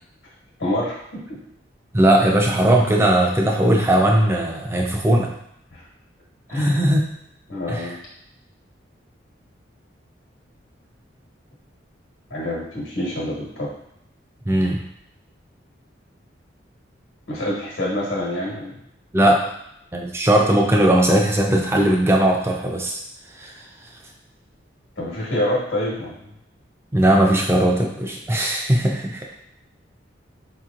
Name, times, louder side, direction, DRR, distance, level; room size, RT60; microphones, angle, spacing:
voice 1, 0.6-1.2 5.7-5.8 6.5-6.8 7.5-8.0 12.3-13.7 17.3-18.8 25.0-26.2, left 1 dB, 85° left, -5 dB, 1.2 m, -26 dB
voice 2, 1.9-5.3 6.5-7.0 7.7-7.9 14.5-14.8 19.1-19.4 19.9-23.0 23.4-23.5 26.9-29.3, right 1 dB, 15° right, 0 dB, 0.4 m, -18 dB
4.4 x 2.9 x 2.4 m, 0.76 s
head